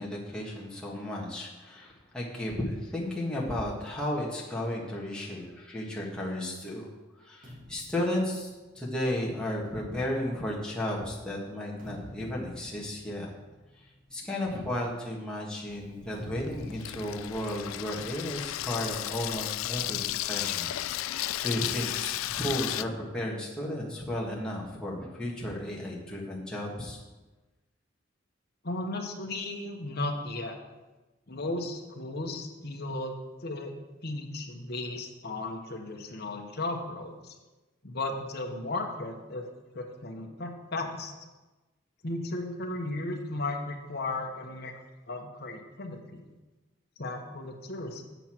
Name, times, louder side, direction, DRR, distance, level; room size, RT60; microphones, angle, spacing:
voice 1, 0.0-6.9 7.2-8.5 8.7-13.3 14.1-20.0 20.3-27.0, left 1 dB, 5° left, -5 dB, 1.6 m, -34 dB
sound 1, 7.4-11.0 11.5-19.0 19.2-19.4 19.8-21.4 22.2-24.0, equal, 40° right, 2.4 m, -50 dB
Water tap faucet / Sink (filling or washing), 15.7-22.8, left 14 dB, 85° left, 0.3 m, -34 dB
voice 2, 28.6-30.6 31.3-33.7 34.0-37.3 37.8-39.5 39.7-41.1 42.0-44.7 45.1-46.2 47.0-48.0, left 2 dB, 55° left, 3 dB, 1.1 m, -35 dB
8.1 x 8.1 x 4.5 m, 1.2 s
head